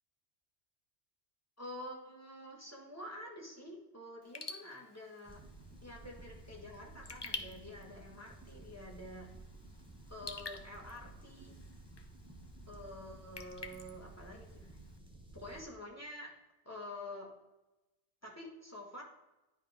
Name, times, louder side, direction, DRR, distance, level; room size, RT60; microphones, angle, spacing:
voice 1, 1.6-5.4 5.8-9.3 10.1-11.6 12.7-14.8 15.3-16.3 16.7-17.3 18.2-19.0, left 1 dB, 15° left, -1 dB, 1.9 m, -48 dB
Raindrop / Drip, 4.2-15.0, left 3 dB, 30° left, 0.5 m, -50 dB
sound 1, 5.3-15.7, right 2 dB, 5° right, 0.9 m, -54 dB
9.9 x 5.2 x 3.7 m, 1.0 s
omnidirectional pair, 1.2 m